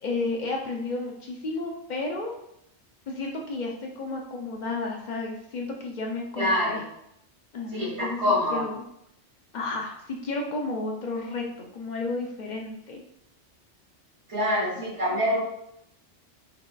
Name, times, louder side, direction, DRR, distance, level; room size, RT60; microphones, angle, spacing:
voice 1, 0.0-2.4 3.1-6.8 7.5-8.2 8.5-8.8 9.5-11.4 11.7-13.0, left 3 dB, 55° left, 1 dB, 0.5 m, -32 dB
voice 2, 6.4-6.8 7.7-8.6 14.3-15.4, left 1 dB, 75° right, -6 dB, 2.1 m, -25 dB
5.6 x 2.3 x 2.2 m, 0.77 s
omnidirectional pair, 1.2 m